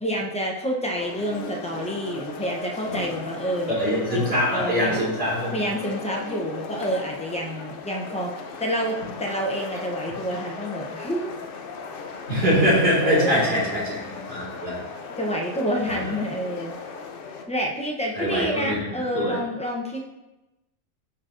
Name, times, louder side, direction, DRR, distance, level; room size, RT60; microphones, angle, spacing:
voice 1, 0.0-3.8 4.1-5.0 5.5-8.3 8.6-11.3 13.0-13.6 14.6-14.7 15.2-16.7 17.5-20.0, equal, 10° left, 0 dB, 0.3 m, -28 dB
sound 1, 1.0-17.4, left 4 dB, 60° left, 0.6 m, -37 dB
voice 2, 3.7-5.7 12.3-14.8 15.8-16.1 18.1-19.4, equal, 45° right, -6 dB, 2.4 m, -23 dB
11.0 x 4.0 x 2.5 m, 1.0 s
omnidirectional pair, 1.4 m